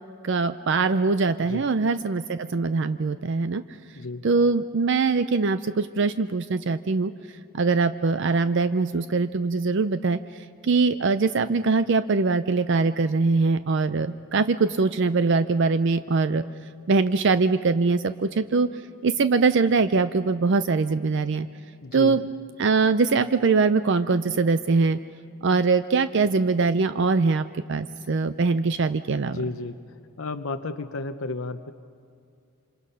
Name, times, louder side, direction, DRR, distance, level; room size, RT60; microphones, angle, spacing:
voice 1, 0.2-3.6 4.2-7.1 7.5-10.2 10.6-16.4 16.9-18.7 19.0-21.5 21.9-22.3 22.6-25.0 25.4-27.4 27.7-29.4, right 4 dB, 55° right, 11 dB, 0.5 m, -22 dB
voice 2, 21.8-22.2 29.2-29.8 30.2-31.7, left 3 dB, 70° left, 8 dB, 0.7 m, -32 dB
27.5 x 26.0 x 5.6 m, 2.4 s
head